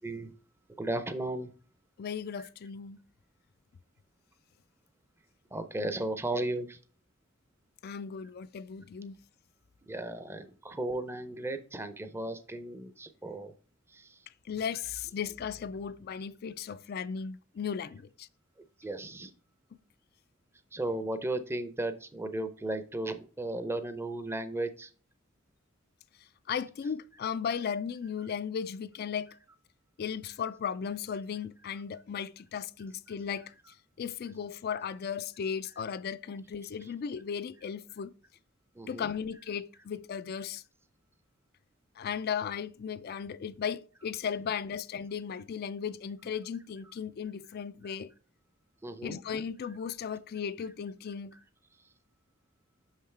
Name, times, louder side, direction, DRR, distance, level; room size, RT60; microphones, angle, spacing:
voice 1, 0.8-1.5 2.4-2.5 5.5-6.8 9.9-13.5 13.9-14.2 18.8-19.3 20.7-24.9 38.7-39.1 48.8-49.2, right 2 dB, 10° right, 0.6 m, -35 dB
voice 2, 2.0-3.0 7.8-9.2 14.5-18.3 26.5-29.3 30.0-33.5 34.0-38.1 38.9-40.6 42.0-48.1 49.0-51.3, left 7 dB, 50° left, 0.3 m, -36 dB
6.3 x 5.7 x 3.2 m
head